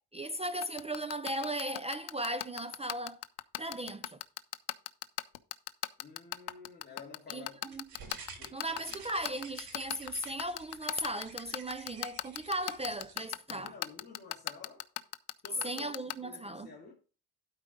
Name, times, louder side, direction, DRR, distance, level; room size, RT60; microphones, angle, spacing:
voice 1, 0.1-3.2 3.6-4.2 7.3-7.8 8.5-13.7 15.6-16.7, right 1 dB, 15° right, 0.4 m, -37 dB
sound 1, 0.6-16.1, left 16 dB, 85° left, 0.7 m, -35 dB
voice 2, 6.0-7.7 8.4-9.0 13.5-14.9 15.4-16.9, left 4 dB, 25° left, 2.3 m, -51 dB
sound 2, 7.7-13.2, right 5 dB, 70° right, 3.9 m, -51 dB
12.0 x 4.8 x 5.0 m
cardioid pair, 155°, 40 cm